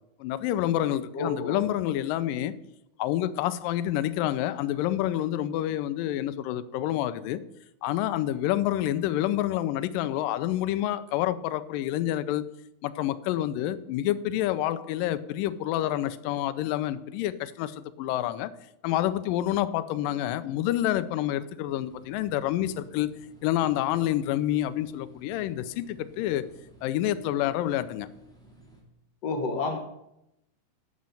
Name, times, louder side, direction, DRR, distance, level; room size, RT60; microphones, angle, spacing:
voice 1, 0.2-2.5 3.0-7.4 7.8-12.5 12.8-18.5 18.8-23.1 23.4-26.5 26.8-28.1, left 13 dB, 80° left, 2.2 m, -28 dB
voice 2, 1.1-1.7 29.2-29.8, left 3 dB, 55° left, 2.2 m, -30 dB
sound 1, 21.7-28.8, right 1 dB, ahead, 1.8 m, -55 dB
11.5 x 6.4 x 7.1 m
omnidirectional pair, 4.1 m